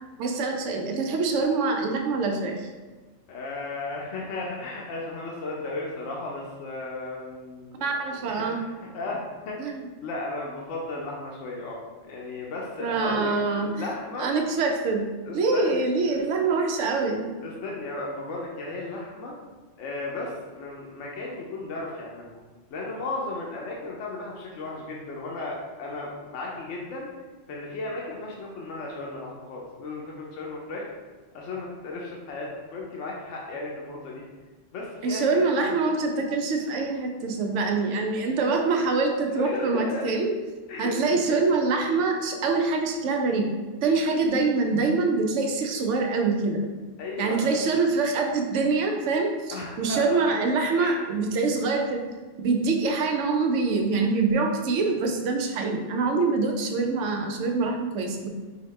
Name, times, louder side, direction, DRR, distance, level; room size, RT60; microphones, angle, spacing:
voice 1, 0.2-2.7 7.8-8.6 9.6-9.8 12.8-13.8 14.2-15.0 15.3-17.3 35.0-40.3 40.8-43.5 43.8-46.6 47.2-52.0 52.4-58.3, right 4 dB, 75° right, 3 dB, 0.9 m, -25 dB
voice 2, 3.3-8.0 8.3-8.5 8.8-9.6 10.0-11.8 12.1-14.3 15.3-16.2 17.4-19.3 19.8-22.4 22.7-27.1 27.5-30.9 31.3-34.2 34.7-35.8 39.3-40.1 40.7-41.2 47.0-47.6 49.5-50.2 50.8-51.0, left 2 dB, 75° left, -2 dB, 1.0 m, -35 dB
4.7 x 2.8 x 3.2 m, 1.3 s
omnidirectional pair, 1.3 m